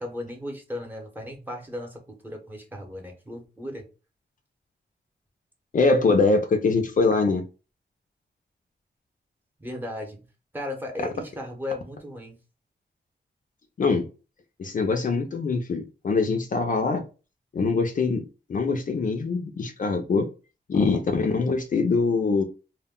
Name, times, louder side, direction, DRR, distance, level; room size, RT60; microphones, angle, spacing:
voice 1, 0.0-3.8 9.6-10.2 10.5-12.4, left 1 dB, 10° right, 0.8 m, -36 dB
voice 2, 5.7-7.4 13.8-14.1 14.6-17.0 17.5-20.3 20.7-22.4, left 4 dB, 50° left, 0.4 m, -23 dB
2.2 x 2.1 x 3.5 m
wide cardioid pair, 120°, 18 cm